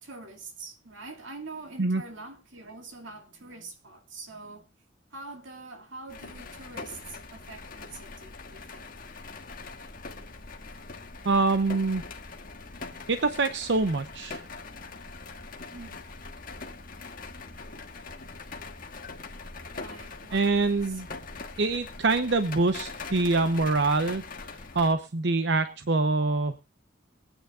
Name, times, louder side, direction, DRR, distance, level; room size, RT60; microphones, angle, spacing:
voice 1, 0.0-4.7 5.1-8.9 15.7-16.0 19.8-21.0, right 3 dB, 80° right, 2.4 m, -44 dB
sound 1, 6.1-24.9, left 3 dB, 45° left, 1.5 m, -42 dB
voice 2, 11.2-12.0 13.1-14.4 20.3-21.1 21.6-26.6, right 3 dB, 65° right, 0.8 m, -25 dB
23.5 x 9.2 x 2.4 m
head